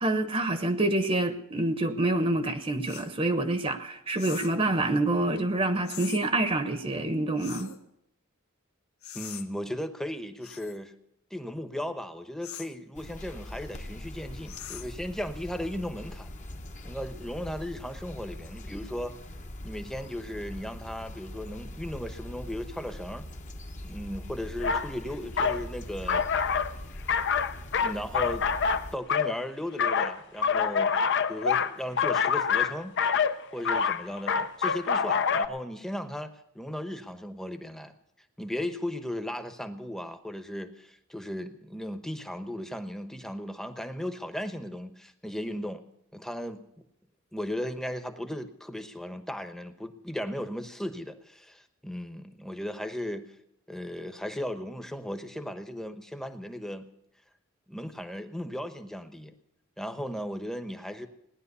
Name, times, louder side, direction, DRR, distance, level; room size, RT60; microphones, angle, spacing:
voice 1, 0.0-7.8, right 2 dB, 30° right, 9 dB, 1.0 m, -27 dB
sound 1, 2.9-3.1 4.2-4.6 5.9-6.2 7.4-7.8 9.0-9.5 10.4-10.8 12.4-12.8 14.5-15.0, left 11 dB, 90° left, 1.1 m, -42 dB
voice 2, 9.1-10.9 11.3-16.3 16.8-19.1 19.6-23.3 23.8-26.2 27.8-28.5 28.9-30.9 31.3-33.0 33.5-37.9 38.4-45.8 46.1-46.6 47.3-53.3 53.7-56.9 57.7-59.3 59.8-61.1, left 1 dB, ahead, 8 dB, 0.9 m, -36 dB
sound 2, 12.9-29.0, left 1 dB, 35° left, 1.0 m, -42 dB
sound 3, 24.6-24.9 25.4-25.6 26.1-26.7 27.1-29.3 29.8-35.5, left 6 dB, 60° left, 0.7 m, -26 dB
18.5 x 10.5 x 6.8 m, 0.81 s
head